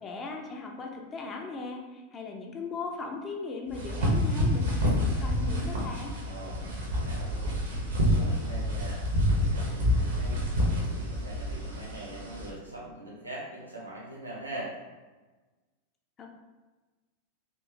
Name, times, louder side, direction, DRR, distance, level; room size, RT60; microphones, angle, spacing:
voice 1, 0.0-6.1 16.2-16.3, left 3 dB, 25° left, 1 dB, 0.6 m, -38 dB
sound 1, 3.7-12.5, equal, 65° right, 1.0 m, -28 dB
voice 2, 6.2-7.8 8.1-10.5 10.7-14.8, right 1 dB, 85° right, -5 dB, 1.1 m, -42 dB
4.3 x 2.7 x 2.8 m, 1.3 s
figure-of-eight pair, 90°, 0 cm